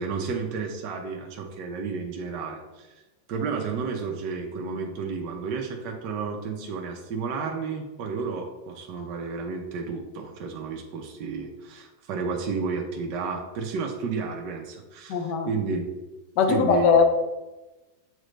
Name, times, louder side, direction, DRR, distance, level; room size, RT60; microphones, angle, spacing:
voice 1, 0.0-2.9 3.3-15.9 16.5-17.0, right 4 dB, 70° right, 2 dB, 1.3 m, -31 dB
voice 2, 15.1-15.5 16.4-17.0, left 6 dB, 70° left, 5 dB, 1.3 m, -20 dB
7.4 x 5.1 x 3.3 m, 1.1 s
omnidirectional pair, 2.1 m